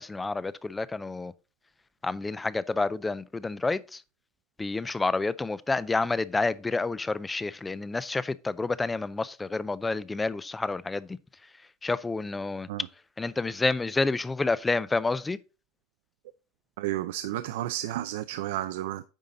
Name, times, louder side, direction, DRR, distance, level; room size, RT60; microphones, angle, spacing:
voice 1, 0.0-1.3 2.0-4.0 4.6-11.2 11.8-12.7 13.2-15.4, left 3 dB, 10° left, 0.3 m, -29 dB
voice 2, 16.8-19.0, right 14 dB, 85° right, 0.5 m, -32 dB
9.0 x 5.5 x 3.7 m
supercardioid pair, 160°, 0 cm